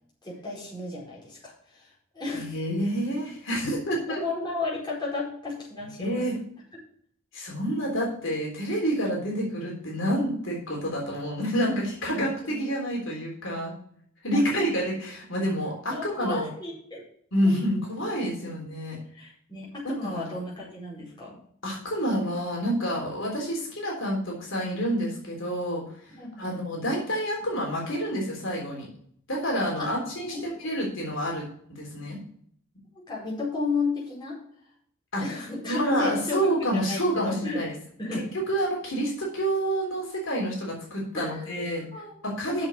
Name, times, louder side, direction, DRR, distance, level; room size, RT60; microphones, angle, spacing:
voice 1, 0.2-2.6 4.1-6.2 12.5-12.6 14.3-14.7 15.9-17.0 17.4-17.8 18.4-18.5 19.1-21.4 26.1-26.6 29.8-29.9 30.3-30.5 33.1-34.4 35.2-36.4 36.7-37.6 38.0-38.2 41.1-42.2 42.5-42.7, left 3 dB, 20° left, -6 dB, 4.8 m, -33 dB
voice 2, 2.3-4.2 6.0-6.4 7.3-13.7 14.2-16.5 17.3-19.0 19.8-20.3 21.6-25.8 26.4-28.9 29.3-31.4 31.8-32.2 35.1-35.2 35.7-37.7 38.5-41.8 42.2-42.7, equal, 65° left, -2 dB, 3.6 m, -28 dB
7.9 x 6.9 x 7.0 m, 0.63 s
head